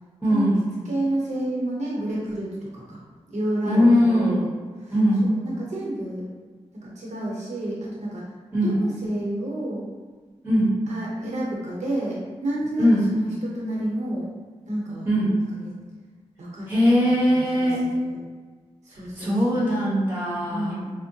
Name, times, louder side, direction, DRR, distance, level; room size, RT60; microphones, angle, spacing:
voice 1, 0.2-0.6 3.6-4.4 4.9-5.3 8.5-8.8 10.4-10.7 12.8-13.1 15.0-15.3 16.7-17.8 19.2-20.7, equal, 15° right, -8 dB, 1.2 m, -20 dB
voice 2, 0.8-3.0 3.3-4.5 4.8-4.9 5.2-6.2 6.7-8.2 8.6-9.9 10.9-14.3 14.7-15.1 15.5-15.7 16.4-16.7 17.3-18.2 18.8-19.7 20.5-20.9, right 1 dB, 80° right, -5 dB, 0.8 m, -30 dB
4.3 x 2.1 x 2.7 m, 1.4 s
wide cardioid pair, 170°, 12 cm